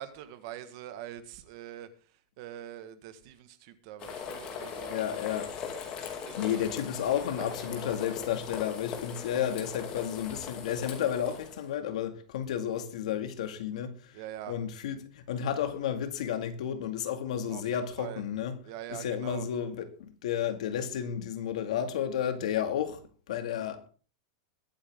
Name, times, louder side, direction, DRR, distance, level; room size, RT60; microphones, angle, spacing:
voice 1, 0.0-5.4 6.2-6.6 7.4-7.8 14.1-14.6 17.5-18.2 18.6-19.5, right 11 dB, 40° right, 1.5 m, -44 dB
sound 1, 4.0-11.7, left 7 dB, 25° left, 2.5 m, -40 dB
voice 2, 4.9-5.5 6.4-14.2 14.5-18.6 18.9-23.0 23.3-23.9, left 9 dB, 70° left, 2.1 m, -32 dB
22.0 x 8.3 x 3.7 m
supercardioid pair, 175°, 4 cm